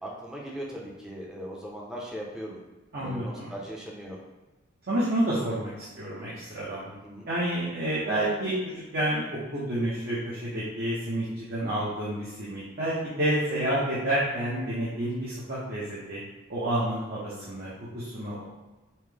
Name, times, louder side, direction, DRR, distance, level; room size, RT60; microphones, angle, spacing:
voice 1, 0.0-2.6 2.9-4.2 6.9-7.3, equal, 5° right, -4 dB, 0.8 m, -39 dB
voice 2, 2.9-3.5 4.9-6.9 7.3-9.3 9.5-16.2 16.5-18.4, right 1 dB, 50° right, -8 dB, 1.0 m, -29 dB
5.7 x 2.2 x 3.3 m, 1.1 s
head